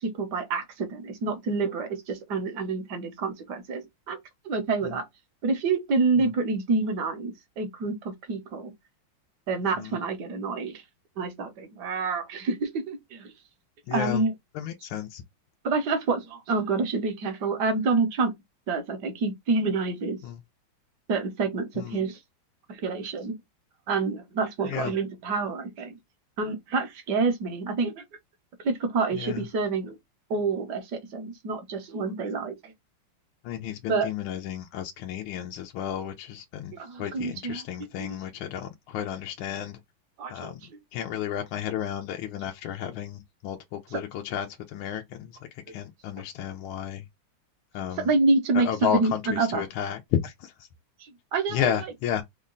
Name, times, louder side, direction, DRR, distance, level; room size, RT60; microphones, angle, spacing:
voice 1, 0.0-4.2 4.4-5.0 5.4-8.7 9.5-10.8 11.2-13.3 13.9-14.3 15.6-18.3 18.7-20.2 21.1-22.2 22.7-23.4 23.9-26.0 26.4-28.0 28.6-30.0 30.3-32.7 33.9-34.1 36.7-38.2 40.2-40.5 43.9-44.0 48.0-49.6 51.0-51.7, right 3 dB, 65° right, 1.2 m, -28 dB
voice 2, 13.9-14.2 14.6-15.2 20.2-20.4 21.8-22.0 24.6-24.9 29.2-29.5 33.4-39.8 40.3-40.6 40.9-45.3 45.7-47.0 47.7-48.1 48.5-50.5 51.5-52.2, left 9 dB, 80° left, 1.4 m, -32 dB
3.7 x 2.1 x 3.7 m
omnidirectional pair, 2.3 m